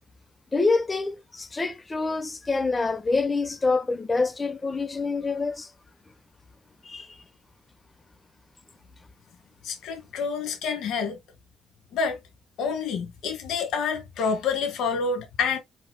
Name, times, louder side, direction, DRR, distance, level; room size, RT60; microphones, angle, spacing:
voice 1, 0.5-5.7 6.8-7.1, left 3 dB, 25° left, 0.9 m, -26 dB
voice 2, 9.6-11.2 11.9-12.2 12.6-15.6, left 5 dB, 80° left, 1.9 m, -28 dB
5.5 x 4.2 x 2.2 m
cardioid pair, 90°, 0 cm